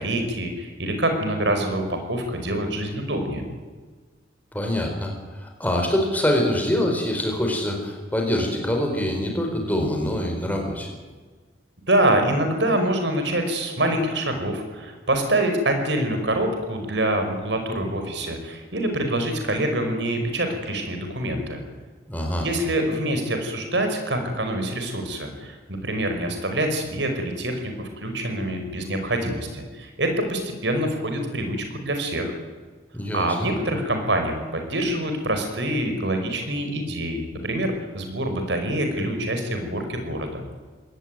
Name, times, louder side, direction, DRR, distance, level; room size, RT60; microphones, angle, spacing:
voice 1, 0.0-3.4 11.9-21.6 22.4-25.6 25.8-32.3 33.1-40.4, right 1 dB, 70° right, 5 dB, 5.4 m, -25 dB
voice 2, 4.5-10.9 22.1-22.5 32.9-33.5, left 1 dB, 10° left, 2 dB, 4.9 m, -25 dB
23.0 x 19.0 x 9.3 m, 1.4 s
head